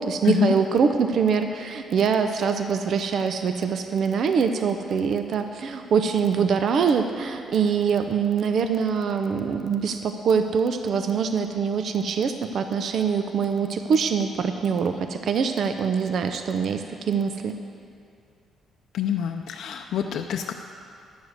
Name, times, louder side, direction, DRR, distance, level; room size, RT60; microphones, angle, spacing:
voice 1, 0.0-17.5, right 6 dB, 60° right, 7 dB, 0.6 m, -24 dB
voice 2, 18.9-20.5, left 9 dB, 75° left, 3 dB, 0.5 m, -25 dB
11.0 x 7.1 x 7.9 m, 2.4 s
cardioid pair, 90°, 0 cm